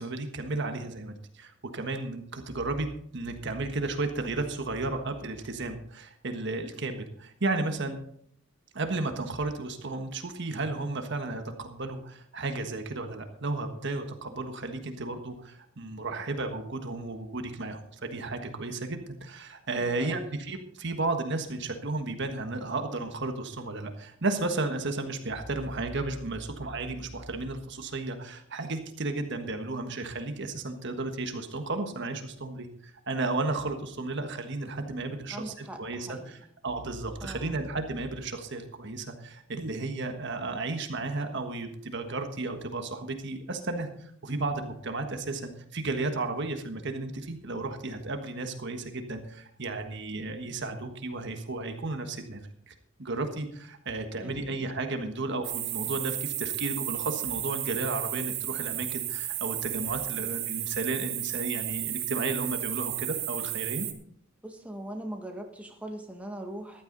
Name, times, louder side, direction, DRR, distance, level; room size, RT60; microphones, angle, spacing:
voice 1, 0.0-8.0 8.7-52.7 53.0-63.9, right 2 dB, 60° right, 6 dB, 1.4 m, -33 dB
voice 2, 19.8-20.3 35.3-36.3 37.2-37.6 54.2-54.6 64.4-66.8, right 1 dB, 5° right, 2 dB, 1.7 m, -41 dB
sound 1, 55.4-63.9, right 13 dB, 85° right, 1.8 m, -33 dB
15.0 x 11.5 x 4.0 m, 0.67 s
head